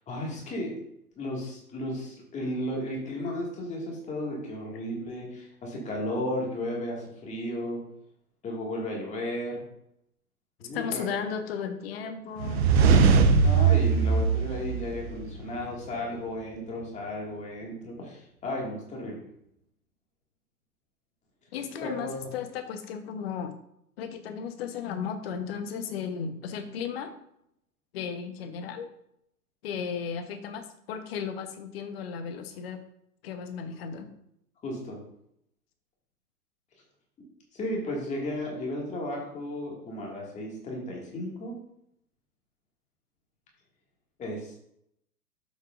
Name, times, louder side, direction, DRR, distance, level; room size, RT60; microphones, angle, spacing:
voice 1, 0.1-0.7 1.2-7.8 8.4-9.6 10.6-11.1 13.2-19.2 21.8-22.3 34.6-35.0 37.5-41.5 44.2-44.6, left 1 dB, 15° left, -2 dB, 2.1 m, -34 dB
voice 2, 10.7-12.6 21.5-23.5 24.0-27.1 27.9-28.9 29.6-32.8 33.2-34.1, left 7 dB, 40° left, 7 dB, 1.1 m, -35 dB
sound 1, 12.4-15.4, right 5 dB, 45° right, 0.9 m, -21 dB
9.4 x 7.4 x 2.5 m, 0.75 s
figure-of-eight pair, 120°, 46 cm